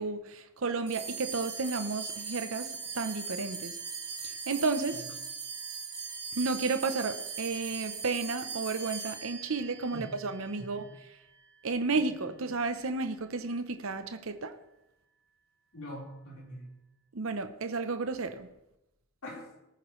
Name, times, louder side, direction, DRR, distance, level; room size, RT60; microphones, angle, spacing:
voice 1, 0.0-2.7 2.9-3.8 4.5-5.0 6.4-10.8 11.6-14.5 17.1-18.5, right 4 dB, 65° right, 0.8 m, -32 dB
sound 1, 0.9-11.5, right 5 dB, 80° right, 3.7 m, -40 dB
voice 2, 10.6-10.9 12.2-12.3 15.7-16.7 19.2-19.5, equal, 75° left, 4.2 m, -43 dB
19.0 x 9.2 x 3.2 m
head